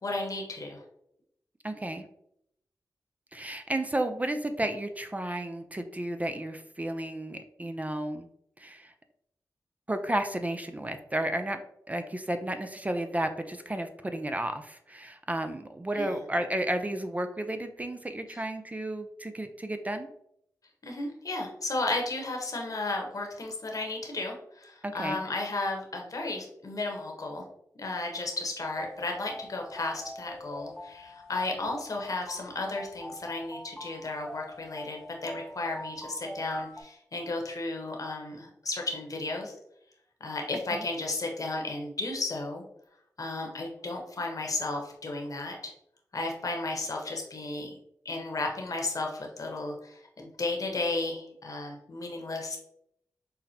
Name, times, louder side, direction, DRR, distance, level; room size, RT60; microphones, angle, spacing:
voice 1, 0.0-0.8 15.9-16.2 18.3-18.4 20.8-27.4 27.8-39.5 40.2-42.6 43.2-45.6 46.1-47.8 48.0-52.6, left 2 dB, 55° left, 1 dB, 1.0 m, -34 dB
voice 2, 1.6-2.1 3.3-8.3 8.6-8.9 9.9-11.6 11.9-20.1 24.8-25.2 40.7-40.8, right 1 dB, 20° right, 7 dB, 0.4 m, -32 dB
sound 1, 28.6-36.8, left 1 dB, 5° left, 0.8 m, -44 dB
5.7 x 2.1 x 2.8 m, 0.74 s
cardioid pair, 40°, 7 cm